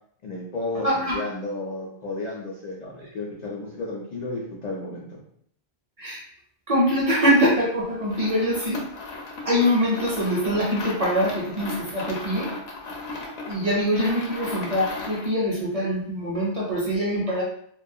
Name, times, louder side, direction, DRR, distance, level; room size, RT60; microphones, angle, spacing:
voice 1, 0.2-5.2, left 2 dB, 55° left, -4 dB, 0.5 m, -33 dB
voice 2, 0.8-1.2 6.0-6.2 6.7-8.8 9.4-12.5 13.5-17.4, equal, 45° right, -5 dB, 0.5 m, -23 dB
sound 1, 8.0-15.4, left 3 dB, 80° left, 0.9 m, -36 dB
2.3 x 2.2 x 2.6 m, 0.66 s
omnidirectional pair, 1.0 m